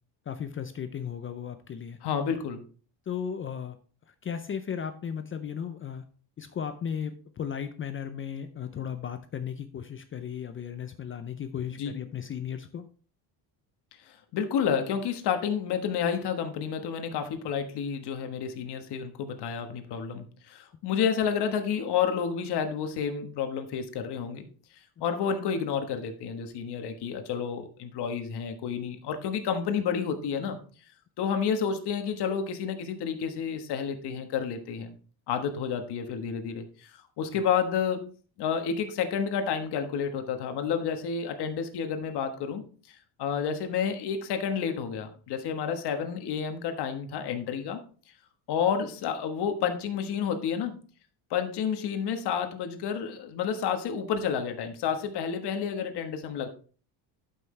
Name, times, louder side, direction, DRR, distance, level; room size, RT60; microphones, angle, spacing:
voice 1, 0.3-2.0 3.1-3.8 4.2-6.0 6.4-12.8 37.3-37.4, left 8 dB, 30° left, 9 dB, 0.5 m, -35 dB
voice 2, 2.0-2.6 11.8-12.0 14.3-24.5 25.0-30.6 31.2-34.9 35.3-38.0 38.4-47.8 48.5-50.8 51.3-56.5, left 7 dB, 60° left, 7 dB, 1.4 m, -30 dB
12.0 x 5.7 x 3.2 m, 0.40 s
cardioid pair, 160°, 45 cm